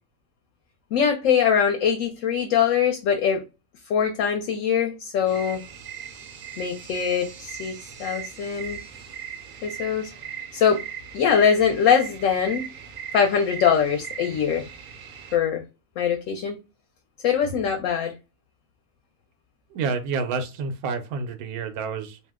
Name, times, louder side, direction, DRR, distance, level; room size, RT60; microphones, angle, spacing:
voice 1, 0.9-3.4 3.9-5.6 6.6-7.7 8.0-8.8 9.6-10.1 10.5-10.8 11.1-12.7 13.1-14.7 15.3-15.6 16.0-16.6 17.2-18.1, left 7 dB, 70° left, 0.9 m, -22 dB
sound 1, 5.3-15.4, right 8 dB, 60° right, 0.6 m, -39 dB
voice 2, 19.7-22.2, right 4 dB, 85° right, 1.1 m, -29 dB
2.7 x 2.0 x 3.5 m
omnidirectional pair, 1.5 m